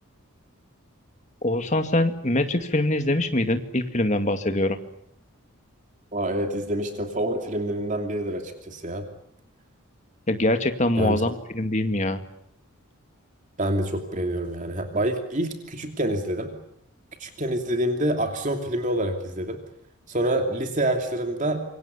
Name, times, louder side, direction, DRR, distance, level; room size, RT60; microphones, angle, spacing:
voice 1, 1.4-4.8 10.3-12.2, left 1 dB, 30° left, 8 dB, 2.3 m, -23 dB
voice 2, 6.1-9.1 11.0-11.2 13.6-16.5 17.2-19.6 20.1-21.6, right 1 dB, 35° right, 5 dB, 2.8 m, -27 dB
27.5 x 24.5 x 8.3 m, 0.71 s
head